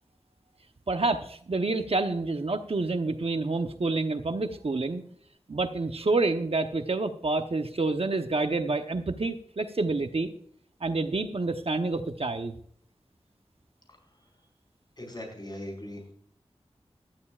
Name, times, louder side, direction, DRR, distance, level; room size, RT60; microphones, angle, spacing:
voice 1, 0.9-5.0 5.5-10.3 10.8-12.6, right 3 dB, 60° right, 7 dB, 0.9 m, -28 dB
voice 2, 15.0-16.1, left 1 dB, 40° left, 1 dB, 4.9 m, -39 dB
16.0 x 13.0 x 2.4 m, 0.63 s
wide cardioid pair, 55°, 11 cm